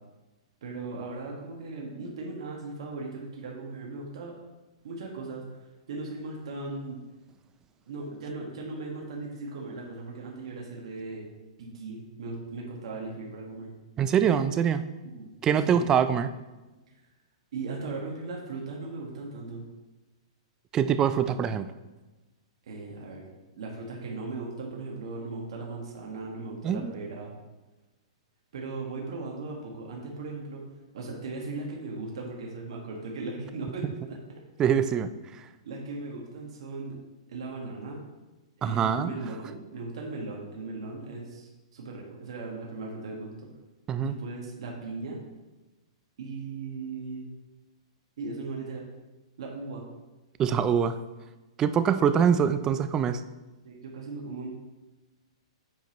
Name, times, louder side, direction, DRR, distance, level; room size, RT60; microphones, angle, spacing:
voice 1, 0.6-4.3 4.8-5.4 5.9-7.0 7.9-11.3 11.6-13.7 15.0-15.8 17.5-19.6 22.6-23.2 23.6-27.3 28.5-30.6 30.9-34.2 35.6-37.0 37.3-38.0 38.6-43.3 44.0-45.2 46.2-47.3 48.2-48.9 49.4-49.9 53.6-54.5, right 3 dB, 65° right, -2 dB, 1.6 m, -38 dB
voice 2, 14.0-14.8 15.4-16.3 20.7-21.7 26.6-26.9 34.6-35.1 38.6-39.1 43.9-44.2 50.4-51.0 51.6-53.2, right 8 dB, 20° right, 12 dB, 0.3 m, -24 dB
9.1 x 5.2 x 3.0 m, 1.1 s
hypercardioid pair, 155°, 3 cm